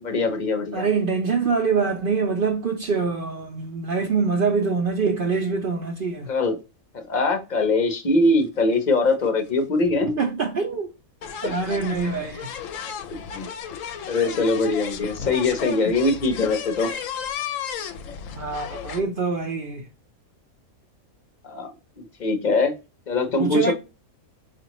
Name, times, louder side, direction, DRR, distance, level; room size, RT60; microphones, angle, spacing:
voice 1, 0.0-0.9 6.3-6.6 6.9-10.2 11.4-11.5 13.1-13.5 14.1-16.9 21.4-21.7 22.0-22.7 23.1-23.7, left 3 dB, 40° left, 0.7 m, -22 dB
voice 2, 0.7-6.3 10.2-10.9 11.4-12.6 18.4-19.9 23.4-23.7, right 4 dB, 60° right, 0.5 m, -24 dB
sound 1, 8.7-8.8 9.0-9.2 10.2-10.3 11.2-19.0, left 7 dB, 70° left, 0.9 m, -34 dB
4.8 x 2.5 x 2.9 m
omnidirectional pair, 1.5 m